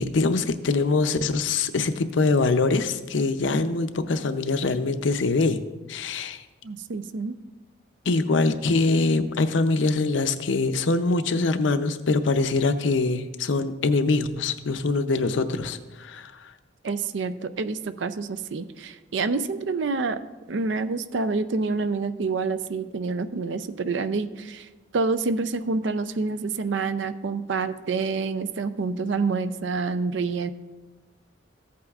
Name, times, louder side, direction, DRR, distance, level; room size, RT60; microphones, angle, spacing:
voice 1, 0.0-5.6 5.9-6.4 8.1-16.5, left 3 dB, 75° left, 10 dB, 0.5 m, -23 dB
voice 2, 6.6-7.3 16.8-20.2 20.5-24.7 24.9-30.5, right 4 dB, 70° right, 12 dB, 0.5 m, -27 dB
15.0 x 8.4 x 2.4 m, 1.2 s
head